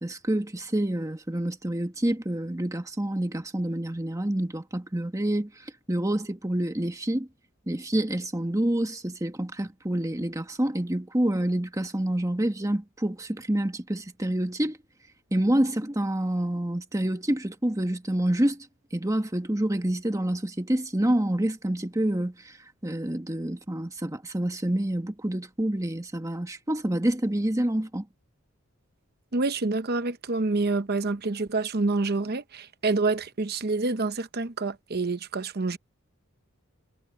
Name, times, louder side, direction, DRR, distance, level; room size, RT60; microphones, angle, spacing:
voice 1, 0.0-7.3 7.7-14.8 15.3-18.7 18.9-28.1, right 1 dB, 15° right, 1.4 m, -27 dB
voice 2, 29.3-35.8, right 3 dB, 45° right, 0.9 m, -27 dB
head